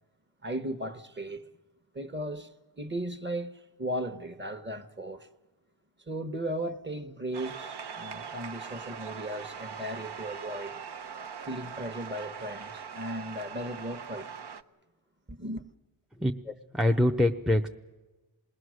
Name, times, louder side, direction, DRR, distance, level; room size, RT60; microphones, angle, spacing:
voice 1, 0.4-1.4 1.9-2.5 2.8-5.3 6.1-10.8 11.4-14.3 15.3-15.6, right 1 dB, 25° right, 1.2 m, -36 dB
sound 1, 7.3-14.6, right 6 dB, 55° right, 0.9 m, -41 dB
voice 2, 16.2-17.7, left 1 dB, ahead, 0.7 m, -25 dB
27.5 x 19.5 x 6.4 m
cardioid pair, 65°, 48 cm